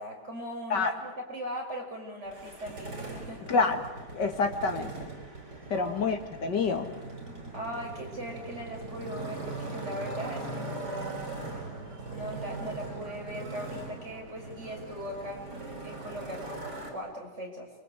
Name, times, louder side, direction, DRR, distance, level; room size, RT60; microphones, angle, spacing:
voice 1, 0.0-3.4 5.7-6.1 7.5-11.4 12.1-17.7, equal, 40° right, 0 dB, 6.4 m, -39 dB
Motorcycle, 2.2-16.9, right 3 dB, 75° right, 5.7 m, -40 dB
voice 2, 3.5-3.9 4.1-5.1 5.7-6.9, left 4 dB, 80° left, 5 dB, 2.8 m, -27 dB
29.0 x 23.5 x 8.4 m, 1.1 s
omnidirectional pair, 1.8 m